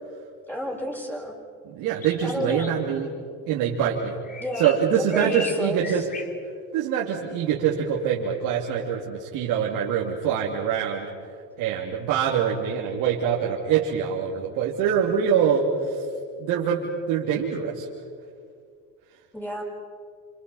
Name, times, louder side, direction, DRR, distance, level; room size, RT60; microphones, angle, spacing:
voice 1, 0.5-1.3 2.2-2.7 4.4-4.7 5.0-6.1 19.3-19.6, equal, 5° left, -1 dB, 7.1 m, -31 dB
voice 2, 1.6-3.1 3.5-4.2 4.6-6.1 6.7-11.1 11.6-15.9 16.4-17.9, right 8 dB, 75° right, -3 dB, 3.1 m, -24 dB
sound 1, 1.9-2.7 4.0-6.3, left 4 dB, 25° left, 3.1 m, -38 dB
28.5 x 27.0 x 5.7 m, 2.2 s
supercardioid pair, 100°, 34 cm